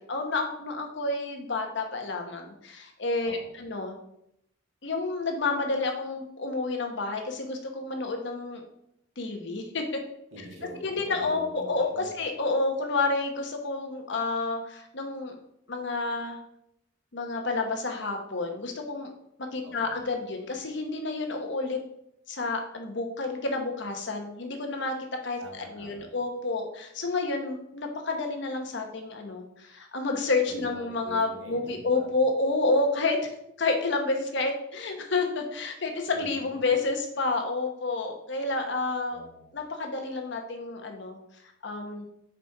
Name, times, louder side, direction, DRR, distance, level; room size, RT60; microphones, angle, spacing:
voice 1, 0.1-4.0 4.8-8.6 9.2-10.0 10.8-15.3 15.7-16.4 17.1-19.1 19.5-21.8 22.3-24.9 25.2-25.4 25.7-33.3 33.6-39.2 39.5-41.2 41.6-42.1, left 3 dB, 65° left, 3 dB, 1.0 m, -29 dB
voice 2, 3.2-3.6 10.3-12.1 19.6-20.0 25.4-26.1 30.5-32.2 36.1-36.7 39.1-39.5, right 1 dB, 80° right, -3 dB, 2.1 m, -45 dB
5.0 x 4.2 x 4.7 m, 0.78 s
head